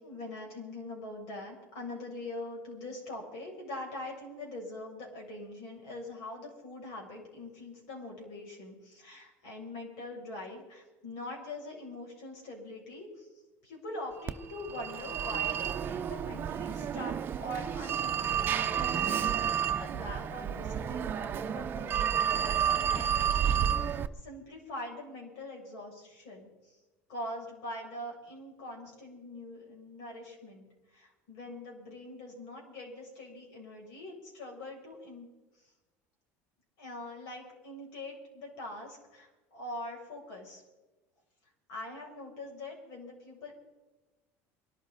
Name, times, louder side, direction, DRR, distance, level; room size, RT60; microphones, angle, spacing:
voice 1, 0.0-13.3 13.6-26.8 27.1-35.3 35.6-35.7 36.8-40.6 41.7-43.6, left 1 dB, 75° left, -1 dB, 7.5 m, -43 dB
Telephone, 14.3-24.1, right 8 dB, 35° right, 0.7 m, -31 dB
24.5 x 13.0 x 4.2 m, 1.1 s
cardioid pair, 135°, 6 cm